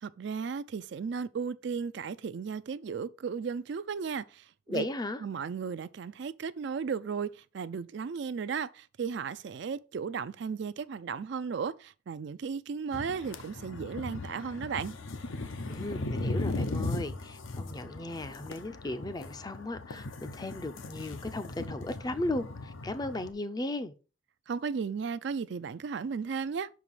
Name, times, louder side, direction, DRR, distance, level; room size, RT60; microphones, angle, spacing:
voice 1, 0.0-4.8 5.2-14.9 24.5-26.7, right 6 dB, 60° right, 0.4 m, -35 dB
voice 2, 4.7-5.2 15.7-23.9, left 2 dB, 20° left, 0.4 m, -36 dB
sound 1, 12.9-23.3, left 2 dB, 80° left, 0.8 m, -38 dB
5.9 x 4.7 x 5.4 m
head